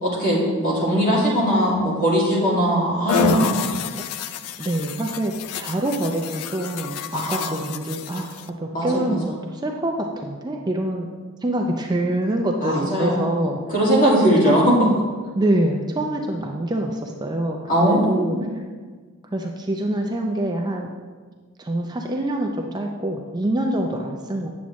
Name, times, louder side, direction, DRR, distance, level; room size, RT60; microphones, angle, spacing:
voice 1, 0.0-3.6 7.1-7.5 8.7-9.2 12.6-13.3 13.7-14.6 17.7-18.4, equal, 40° left, -5 dB, 2.1 m, -20 dB
sound 1, 3.1-8.5, left 7 dB, 85° left, 0.4 m, -29 dB
voice 2, 4.6-11.1 11.4-13.6 14.4-15.0 15.3-18.4 19.3-20.9 21.6-24.5, right 1 dB, 20° right, 2 dB, 0.4 m, -25 dB
8.5 x 7.3 x 3.1 m, 1.5 s
head